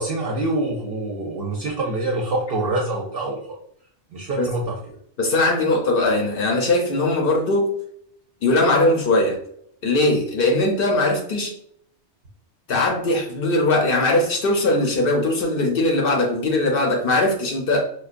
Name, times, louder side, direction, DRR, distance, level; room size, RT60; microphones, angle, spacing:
voice 1, 0.0-3.6 4.1-5.0, right 2 dB, 60° right, -1 dB, 0.7 m, -26 dB
voice 2, 5.2-7.8 8.4-9.4 9.8-11.5 12.7-17.8, left 2 dB, 60° left, 1 dB, 0.8 m, -20 dB
4.6 x 2.3 x 2.4 m, 0.66 s
omnidirectional pair, 1.2 m